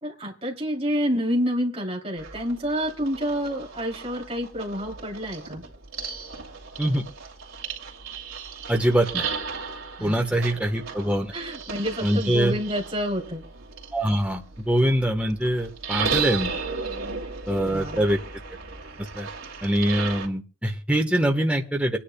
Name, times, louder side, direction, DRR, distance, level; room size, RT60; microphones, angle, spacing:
voice 1, 0.0-5.6 10.0-10.1 11.3-13.4 17.6-18.0, equal, 30° right, -2 dB, 3.1 m, -28 dB
sound 1, 2.2-20.3, right 5 dB, 80° right, 2.6 m, -35 dB
voice 2, 8.7-9.2 10.0-11.3 12.0-12.5 13.9-16.5 17.5-18.2 19.1-19.3 19.6-22.0, right 1 dB, 5° right, 2 dB, 1.2 m, -23 dB
25.5 x 10.0 x 2.3 m, 0.35 s
head